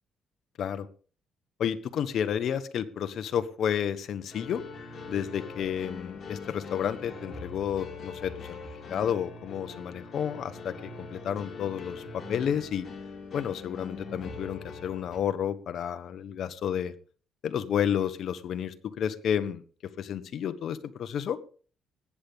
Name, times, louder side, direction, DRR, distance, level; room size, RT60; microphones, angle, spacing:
voice 1, 1.6-4.6 5.1-8.6 8.9-12.9 13.3-16.9 17.4-19.6 20.0-21.4, left 8 dB, 65° left, 11 dB, 1.3 m, -31 dB
sound 1, 4.3-15.2, left 4 dB, 45° left, 5.1 m, -42 dB
20.0 x 8.7 x 3.7 m, 0.39 s
cardioid pair, 90°, 0 cm